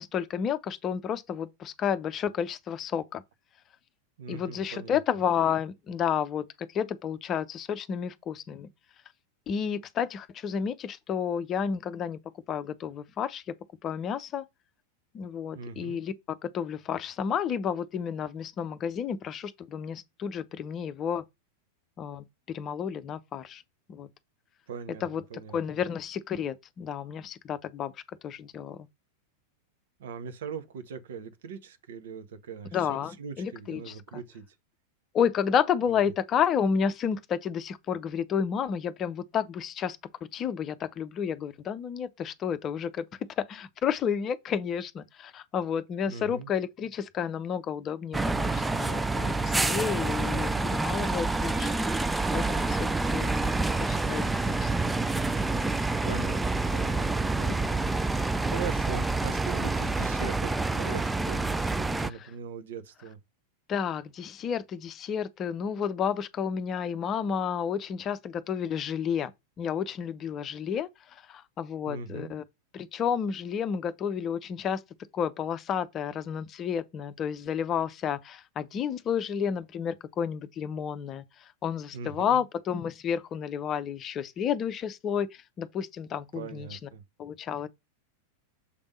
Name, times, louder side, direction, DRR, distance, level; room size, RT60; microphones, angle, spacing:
voice 1, 0.0-3.2 4.3-8.7 9.5-12.2 12.5-13.5 13.8-14.4 15.1-16.1 16.4-21.2 22.0-23.6 23.9-24.1 25.0-25.2 25.5-27.9 28.2-28.9 32.7-34.2 35.1-40.0 40.3-43.0 43.4-51.8 52.3-53.5 53.8-55.0 57.6-57.7 62.2-62.3 63.7-69.3 69.6-72.4 72.7-74.8 75.1-81.2 81.6-86.8 87.2-87.7, left 7 dB, 30° left, 0.6 m, -31 dB
voice 2, 4.2-5.0 15.5-16.0 24.7-25.8 30.0-34.6 35.9-36.1 46.1-46.5 56.0-63.2 71.9-72.3 81.9-82.4 86.3-87.0, right 6 dB, 60° right, 0.9 m, -41 dB
sound 1, 48.1-62.1, right 3 dB, 10° right, 0.4 m, -28 dB
6.6 x 3.5 x 5.2 m
figure-of-eight pair, 90°, 0 cm